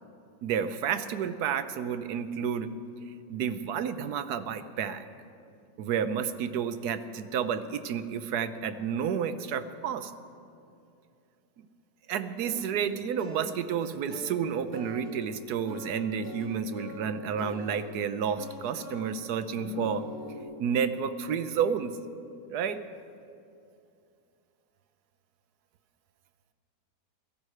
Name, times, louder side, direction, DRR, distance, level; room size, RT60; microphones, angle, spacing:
voice 1, 0.4-2.7 3.3-5.0 5.8-10.1 11.6-11.7 12.1-20.0 20.6-21.9 22.5-22.8, right 7 dB, 70° right, 10 dB, 1.1 m, -31 dB
sound 1, 12.4-17.8 18.4-19.1 19.5-20.4, left 2 dB, 65° left, 2.9 m, -42 dB
16.5 x 14.0 x 4.9 m, 2.5 s
omnidirectional pair, 1.9 m